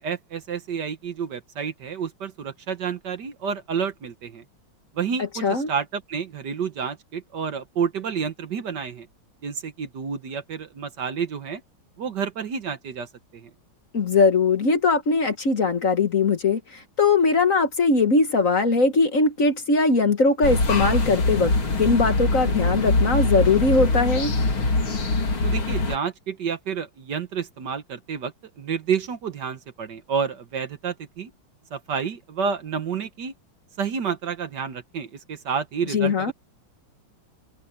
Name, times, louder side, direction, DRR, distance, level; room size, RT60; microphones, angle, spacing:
voice 1, 0.0-4.4 4.9-9.1 9.4-11.6 12.0-13.5 25.4-31.3 31.7-33.3 33.8-36.3, right 6 dB, 60° right, 1.7 m, -30 dB
voice 2, 13.9-21.5 21.8-24.3 35.9-36.3, left 3 dB, 45° left, 1.7 m, -20 dB
sound 1, 20.4-26.0, left 3 dB, 85° left, 4.2 m, -23 dB
omnidirectional pair, 2.2 m